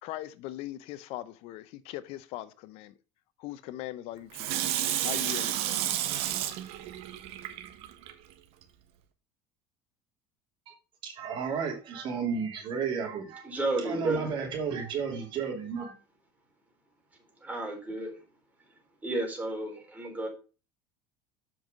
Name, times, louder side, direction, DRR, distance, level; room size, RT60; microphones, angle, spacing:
voice 1, 0.0-3.0 3.4-4.5 5.0-5.8, left 14 dB, 65° left, 0.6 m, -40 dB
Water tap faucet / Sink (filling or washing), 4.3-8.1 8.6-8.7, right 12 dB, 65° right, 1.2 m, -31 dB
voice 2, 11.0-13.5 13.8-15.9, right 6 dB, 50° right, 2.8 m, -33 dB
voice 3, 13.4-14.3 17.3-18.2 18.6-20.3, right 2 dB, 15° right, 3.7 m, -33 dB
7.6 x 5.5 x 5.2 m
supercardioid pair, 120°, 11 cm